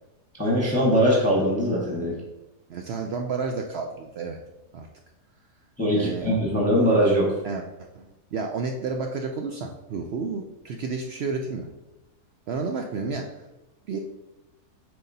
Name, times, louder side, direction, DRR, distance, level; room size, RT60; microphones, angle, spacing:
voice 1, 0.4-2.2 5.8-7.3, equal, 10° left, -5 dB, 1.2 m, -21 dB
voice 2, 2.7-4.4 4.7-4.9 5.9-6.3 7.4-11.7 12.5-13.5 13.9-14.0, right 4 dB, 85° right, 3 dB, 0.5 m, -31 dB
7.8 x 4.7 x 2.7 m, 0.98 s
omnidirectional pair, 1.7 m